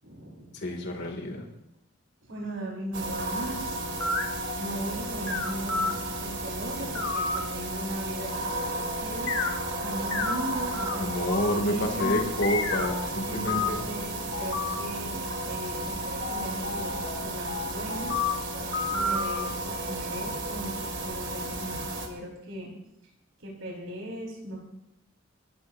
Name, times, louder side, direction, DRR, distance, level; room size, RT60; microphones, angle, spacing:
voice 1, 0.0-0.6 2.2-3.8 4.3-9.3 9.8-12.2 13.2-18.2 18.9-20.7 21.0-22.7 23.4-24.6, right 1 dB, 75° right, -3 dB, 5.5 m, -38 dB
voice 2, 0.6-1.5 11.0-13.8, equal, 55° left, 2 dB, 3.0 m, -28 dB
sound 1, 2.9-22.1, right 2 dB, 60° right, 2.6 m, -33 dB
sound 2, 4.0-5.9 6.7-7.6 8.2-8.8 9.3-9.5 10.1-11.6 12.0-13.1 13.5-13.9 14.3-14.7 16.2-19.4, left 4 dB, 80° left, 2.1 m, -32 dB
29.5 x 14.0 x 2.9 m, 0.84 s
head